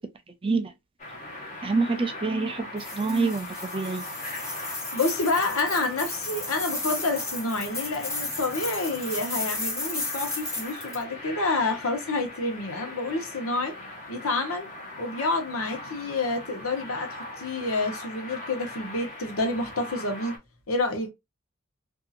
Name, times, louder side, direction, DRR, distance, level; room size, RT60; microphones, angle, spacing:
voice 1, 0.4-0.7 1.6-4.1, right 3 dB, 25° right, 0.4 m, -27 dB
sound 1, 1.0-20.4, left 1 dB, 35° left, 1.0 m, -40 dB
sound 2, 2.8-11.0, left 2 dB, 15° left, 1.2 m, -34 dB
voice 2, 4.9-13.8 14.1-14.7 15.0-20.3 20.7-21.1, left 2 dB, 70° left, 0.9 m, -28 dB
2.7 x 2.6 x 2.4 m
head